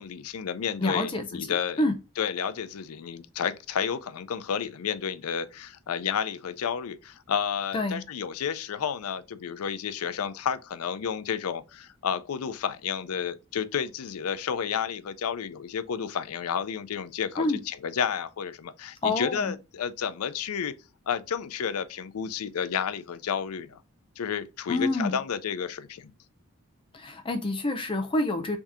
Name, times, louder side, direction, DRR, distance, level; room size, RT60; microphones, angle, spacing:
voice 1, 0.0-20.7 21.1-23.8 24.2-26.1, left 7 dB, 85° left, 0.4 m, -31 dB
voice 2, 0.8-1.5 1.8-1.9 7.7-8.0 17.4-17.6 19.0-19.5 24.7-25.2 26.9-28.6, left 2 dB, 25° left, 0.4 m, -27 dB
3.5 x 2.7 x 4.7 m
head